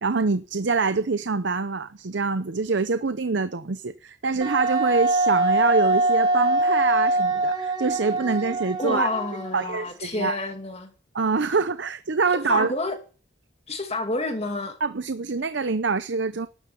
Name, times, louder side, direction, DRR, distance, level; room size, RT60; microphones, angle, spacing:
voice 1, 0.0-9.1 9.5-10.4 11.1-12.7 14.8-16.5, right 4 dB, 65° right, 0.7 m, -25 dB
Wind instrument woodwind instrument, 4.4-9.9, right 2 dB, 25° right, 2.9 m, -23 dB
voice 2, 8.8-10.9 12.5-13.0 13.7-14.8, left 2 dB, 35° left, 2.3 m, -29 dB
12.5 x 11.5 x 7.0 m
head